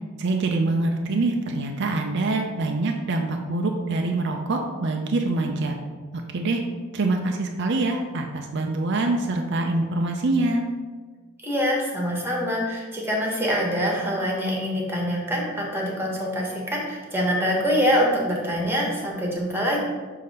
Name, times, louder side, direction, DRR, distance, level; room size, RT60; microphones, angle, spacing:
voice 1, 0.2-5.8 6.3-6.6 6.9-10.6, right 2 dB, 55° right, 3 dB, 0.5 m, -25 dB
voice 2, 11.4-19.8, equal, 10° right, -2 dB, 1.2 m, -25 dB
6.5 x 2.8 x 5.3 m, 1.4 s
head